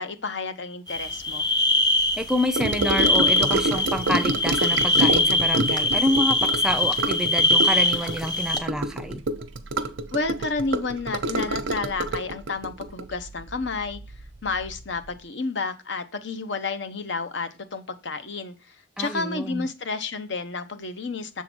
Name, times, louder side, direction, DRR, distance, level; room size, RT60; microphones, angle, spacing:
voice 1, 0.0-1.5 10.1-14.0 14.4-18.5 19.0-21.4, left 3 dB, 70° left, 0.9 m, -30 dB
sound 1, 0.9-8.6, left 2 dB, 20° left, 1.0 m, -23 dB
voice 2, 2.2-9.2 19.0-19.7, equal, 5° right, 0.4 m, -28 dB
Gurgling / Sink (filling or washing) / Trickle dribble, 2.6-14.2 14.5-14.8 15.1-15.2, right 2 dB, 90° right, 0.8 m, -27 dB
7.1 x 3.8 x 6.1 m
head